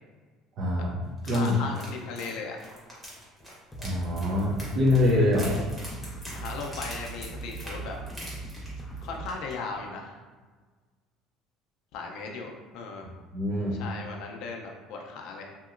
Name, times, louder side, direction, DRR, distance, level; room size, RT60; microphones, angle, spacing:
voice 1, 0.6-0.9 1.3-1.6 3.8-5.6 13.0-13.8, left 1 dB, 55° right, -4 dB, 0.5 m, -25 dB
voice 2, 1.2-2.6 6.3-8.0 9.0-10.2 11.9-13.1 13.8-15.5, left 4 dB, 70° left, 1 dB, 0.4 m, -37 dB
sound 1, 1.2-9.0 9.3-9.5 9.9-10.0, equal, 10° right, 1.0 m, -44 dB
sound 2, 3.7-9.3, right 2 dB, 10° left, 0.4 m, -40 dB
2.9 x 2.7 x 2.5 m, 1.4 s
cardioid pair, 125°, 0 cm